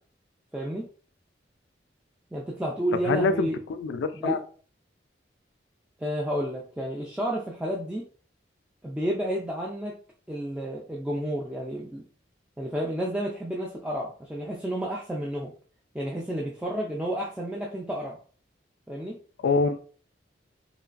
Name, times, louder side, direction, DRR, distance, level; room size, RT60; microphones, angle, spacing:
voice 1, 0.5-0.8 2.3-3.6 4.1-4.4 6.0-8.0 8.8-9.9 10.3-12.0 12.6-15.5 15.9-18.2 18.9-19.2, equal, 5° right, -3 dB, 0.3 m, -31 dB
voice 2, 3.0-4.4 19.4-19.8, left 4 dB, 85° left, 10 dB, 0.3 m, -25 dB
3.1 x 2.3 x 2.4 m, 0.41 s
head